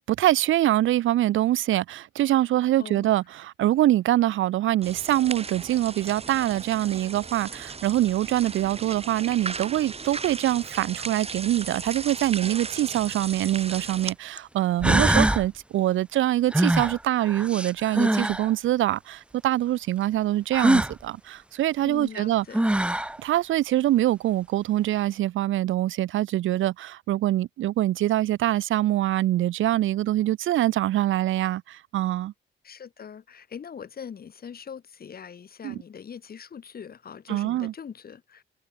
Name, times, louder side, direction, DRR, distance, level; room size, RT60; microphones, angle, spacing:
voice 1, 0.0-22.4 23.2-32.3 35.6-35.8 37.3-37.7, right 14 dB, 80° right, 1.7 m, -24 dB
voice 2, 2.8-3.1 21.8-22.7 32.6-38.4, left 7 dB, 50° left, 6.8 m, -41 dB
sound 1, 4.8-14.1, right 4 dB, 30° right, 2.5 m, -37 dB
sound 2, 13.3-13.4 14.4-14.5 14.8-15.5 16.5-18.5 20.5-20.9 22.2-22.3 22.5-23.2, right 1 dB, 5° right, 0.6 m, -23 dB
cardioid pair, 90°, 20 cm